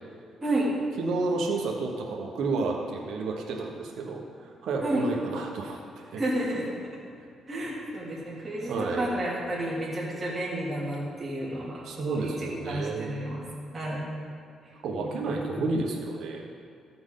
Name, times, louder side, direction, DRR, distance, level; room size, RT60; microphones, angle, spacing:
voice 1, 1.0-6.2 8.7-9.1 11.8-13.2 14.8-16.4, right 3 dB, 75° right, -1 dB, 1.2 m, -31 dB
voice 2, 6.2-6.7 7.5-12.3 12.6-13.4 13.7-14.0 15.0-15.4, right 1 dB, 25° right, -7 dB, 2.6 m, -31 dB
14.0 x 6.1 x 3.9 m, 2.4 s
cardioid pair, 90°, 0 cm